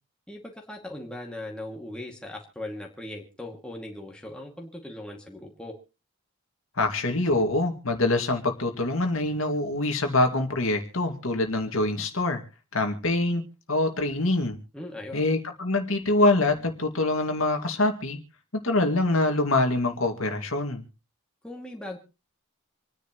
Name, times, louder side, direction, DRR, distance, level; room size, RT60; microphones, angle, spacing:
voice 1, 0.3-5.7 14.7-15.2 21.4-22.0, left 1 dB, 5° left, 0 dB, 2.3 m, -39 dB
voice 2, 6.8-12.4 12.7-13.4 13.7-14.6 15.1-18.2 18.6-20.8, left 2 dB, 75° left, 4 dB, 2.2 m, -25 dB
27.5 x 10.0 x 3.1 m, 0.34 s
head